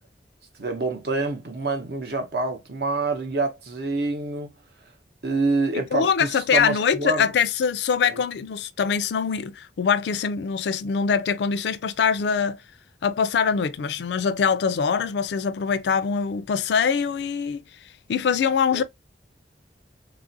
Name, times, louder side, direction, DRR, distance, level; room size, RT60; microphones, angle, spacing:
voice 1, 0.6-4.5 5.2-7.3 8.0-8.2 18.7-18.8, right 3 dB, 60° right, 0.8 m, -27 dB
voice 2, 5.9-12.6 13.0-17.6 18.1-18.8, left 6 dB, 70° left, 0.3 m, -23 dB
3.2 x 2.4 x 2.5 m
head